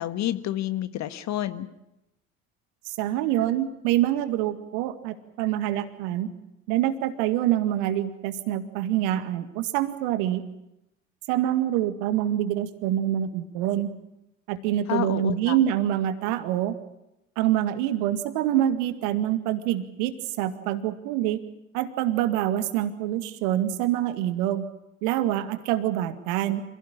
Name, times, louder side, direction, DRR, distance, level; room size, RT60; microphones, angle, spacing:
voice 1, 0.0-1.7 14.9-15.6, left 13 dB, 40° left, 12 dB, 1.6 m, -29 dB
voice 2, 2.9-6.3 6.7-10.4 11.3-13.9 14.5-16.8 17.4-21.4 21.7-24.7 25.0-26.6, right 12 dB, 55° right, 10 dB, 2.1 m, -26 dB
27.5 x 16.5 x 10.0 m, 0.90 s
figure-of-eight pair, 60°, 41 cm